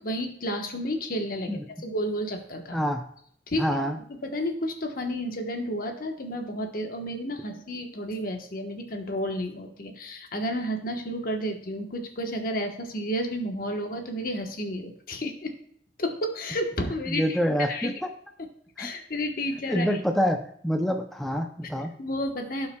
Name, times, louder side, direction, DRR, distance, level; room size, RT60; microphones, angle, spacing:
voice 1, 0.0-2.8 3.5-3.9 4.2-15.5 16.0-17.4 17.7-17.9 18.4-18.5 18.8-20.0 22.0-22.7, equal, 55° left, 4 dB, 1.1 m, -31 dB
voice 2, 3.6-4.0 17.1-17.9 18.8-18.9 19.7-20.4 20.6-21.9, equal, ahead, 3 dB, 0.5 m, -26 dB
16.5 x 5.6 x 2.3 m, 0.64 s
head